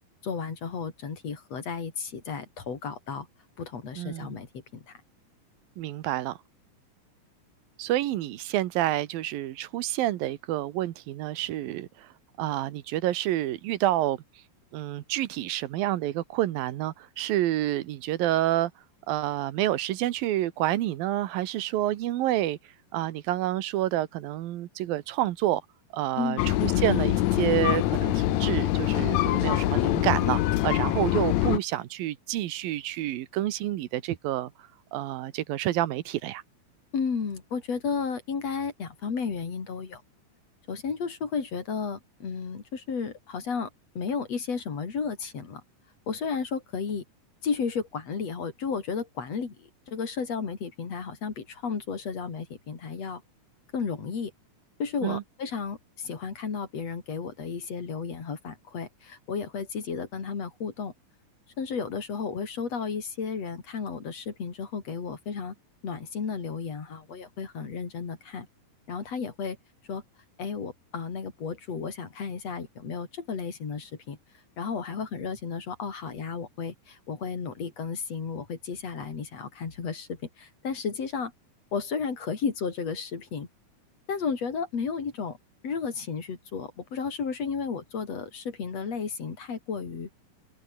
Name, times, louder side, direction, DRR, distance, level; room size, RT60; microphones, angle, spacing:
voice 1, 0.2-3.3 3.6-5.0 26.2-26.4 36.9-40.0 40.7-43.7 44.0-45.6 46.1-47.0 47.4-53.2 53.7-54.3 54.8-60.9 61.6-65.5 65.8-68.5 68.9-69.6 69.9-70.0 70.4-74.2 74.6-81.3 81.7-83.5 84.1-85.4 85.6-90.1, left 5 dB, 45° left, 4.1 m, -33 dB
voice 2, 4.0-4.3 5.8-6.4 7.8-12.1 12.4-14.2 14.7-18.7 19.1-22.6 22.9-25.6 25.9-34.5 34.9-36.4 55.0-55.2, right 14 dB, 90° right, 2.9 m, -28 dB
sound 1, 26.4-31.6, left 15 dB, 70° left, 1.9 m, -24 dB
omnidirectional pair, 4.0 m